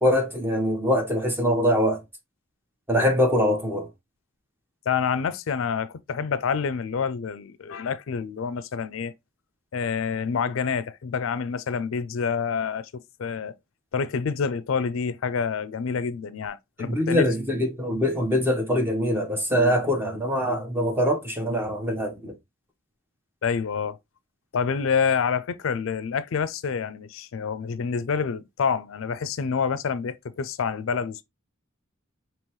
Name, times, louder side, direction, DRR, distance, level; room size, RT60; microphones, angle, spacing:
voice 1, 0.0-2.0 2.9-3.9 16.8-22.3, equal, 10° right, 1.1 m, -23 dB
voice 2, 4.9-9.1 9.7-13.5 13.9-17.3 23.4-24.0 24.5-31.2, left 6 dB, 75° left, 0.4 m, -27 dB
5.4 x 2.9 x 3.0 m
head